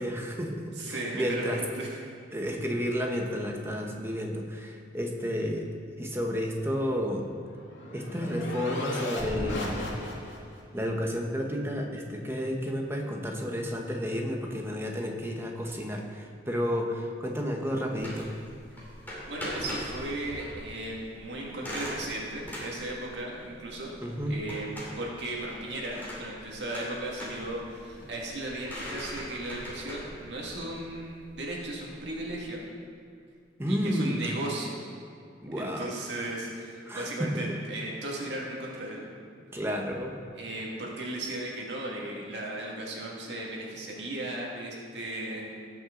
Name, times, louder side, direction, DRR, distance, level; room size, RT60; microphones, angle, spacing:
voice 1, 0.0-1.6 2.3-5.7 6.0-7.3 7.9-9.8 10.7-18.3 24.0-24.4 33.6-34.2 35.4-35.9 36.9-37.4 39.5-40.1, equal, 15° right, 1 dB, 1.1 m, -31 dB
voice 2, 0.8-2.0 19.3-23.9 24.3-32.6 33.7-34.8 35.6-39.0 40.4-45.4, right 1 dB, 70° right, -2 dB, 2.1 m, -36 dB
sound 1, 7.0-10.6, left 1 dB, 80° left, 2.7 m, -36 dB
sound 2, 17.9-32.4, equal, 10° left, 2.6 m, -42 dB
17.5 x 6.1 x 3.9 m, 2.3 s
head